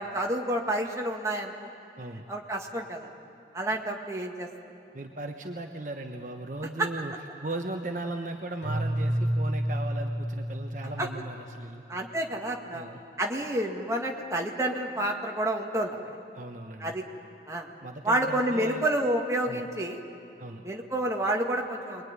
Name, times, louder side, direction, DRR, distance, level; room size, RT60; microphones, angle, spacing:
voice 1, 0.0-1.5 2.3-3.1 3.5-4.5 11.0-11.1 11.9-12.9 13.2-16.0 16.8-17.0 17.5-17.7 18.0-20.0 20.6-22.1, right 1 dB, 15° right, 0 dB, 2.0 m, -29 dB
voice 2, 4.9-7.1 7.4-11.8 12.7-13.0 16.3-17.0 17.8-18.8 19.5-19.7 20.4-20.6, right 2 dB, 45° right, 4 dB, 1.2 m, -37 dB
Keyboard (musical), 8.6-11.7, right 1 dB, 45° left, 3.5 m, -30 dB
27.0 x 22.0 x 9.7 m, 2.6 s
head